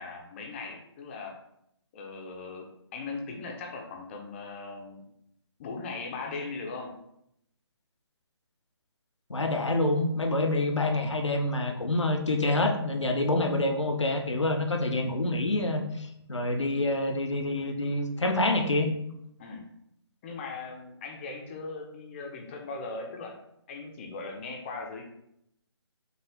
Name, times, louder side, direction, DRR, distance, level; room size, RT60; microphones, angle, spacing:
voice 1, 0.0-1.4 1.9-5.0 5.6-7.0 19.4-19.7 20.2-23.4 23.7-25.0, left 3 dB, 25° left, 2 dB, 0.7 m, -39 dB
voice 2, 9.3-18.9, left 2 dB, 90° left, 5 dB, 0.8 m, -27 dB
5.8 x 2.5 x 3.5 m, 0.76 s
figure-of-eight pair, 145°, 15 cm